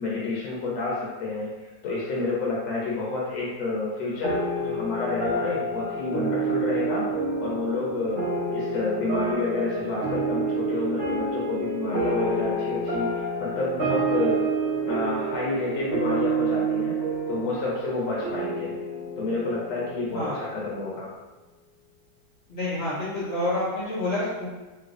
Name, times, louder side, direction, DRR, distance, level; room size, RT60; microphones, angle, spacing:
voice 1, 0.0-8.2 8.5-14.4 14.8-17.0 17.3-18.7 19.2-21.1, left 3 dB, 75° left, -5 dB, 1.4 m, -29 dB
sound 1, 4.2-21.0, right 3 dB, 50° right, 0.8 m, -29 dB
voice 2, 22.5-24.5, left 1 dB, 50° left, -9 dB, 0.7 m, -28 dB
3.2 x 3.1 x 2.4 m, 1.2 s
omnidirectional pair, 2.2 m